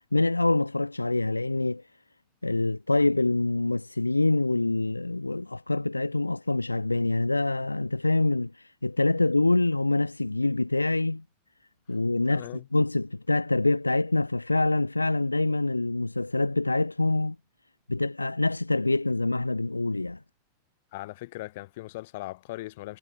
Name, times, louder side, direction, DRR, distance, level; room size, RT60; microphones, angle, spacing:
voice 1, 0.1-1.8 2.4-11.2 11.9-17.4 17.9-20.2, left 2 dB, 85° left, 2.0 m, -25 dB
voice 2, 12.3-12.6 20.9-23.0, left 19 dB, 50° left, 6.5 m, -39 dB
figure-of-eight pair, 90°, 0 cm